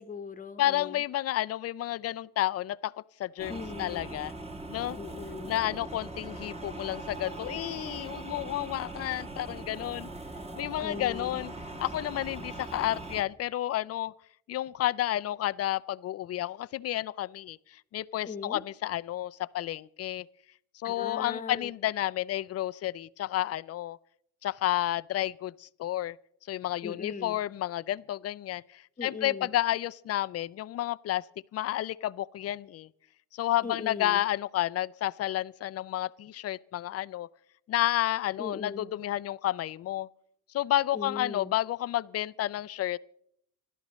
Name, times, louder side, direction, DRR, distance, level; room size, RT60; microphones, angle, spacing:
voice 1, 0.0-1.0 3.5-4.2 5.0-5.6 10.8-11.5 18.3-18.6 20.8-21.7 26.8-27.4 29.0-29.5 33.6-34.2 38.4-38.9 40.9-41.5, left 5 dB, 20° left, 1.1 m, -39 dB
voice 2, 0.6-2.9 3.2-4.3 4.7-5.0 5.4-10.1 10.5-11.5 11.8-14.1 14.5-20.3 20.7-24.0 24.4-26.2 26.5-31.2 31.5-32.9 33.3-37.3 37.7-40.1 40.5-43.0, left 13 dB, 40° left, 0.5 m, -31 dB
sound 1, 3.4-13.2, right 2 dB, 15° right, 1.3 m, -41 dB
26.0 x 12.5 x 3.1 m
supercardioid pair, 85°, 40 cm